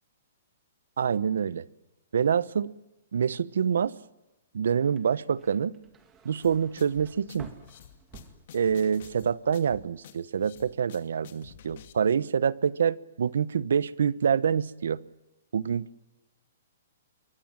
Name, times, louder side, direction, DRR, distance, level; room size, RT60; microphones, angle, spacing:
voice 1, 1.0-1.7 2.1-2.7 3.1-3.9 4.5-5.7 6.2-7.5 8.5-15.0 15.5-16.0, right 7 dB, 80° right, 19 dB, 1.0 m, -26 dB
sound 1, 5.0-9.1 9.4-10.0, right 5 dB, 15° right, 2.5 m, -52 dB
sound 2, 6.4-11.9, left 10 dB, 50° left, 2.4 m, -50 dB
27.0 x 23.5 x 7.5 m, 0.95 s
hypercardioid pair, 165°, 0 cm